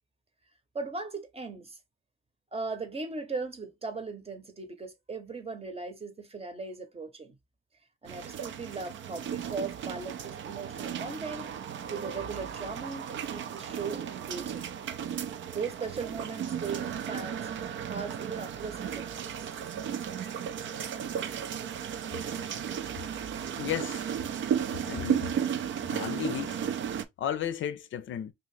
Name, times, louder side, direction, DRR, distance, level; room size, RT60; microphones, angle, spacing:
voice 1, 0.7-1.8 2.5-7.4 8.0-14.7 15.5-19.5 20.2-20.3, right 4 dB, 30° right, 0.8 m, -38 dB
sound 1, 8.0-27.0, right 8 dB, 65° right, 0.5 m, -34 dB
voice 2, 23.5-24.1 24.7-25.3 25.9-26.6 27.2-28.3, left 10 dB, 65° left, 0.5 m, -34 dB
2.8 x 2.6 x 3.1 m
cardioid pair, 75°, 21 cm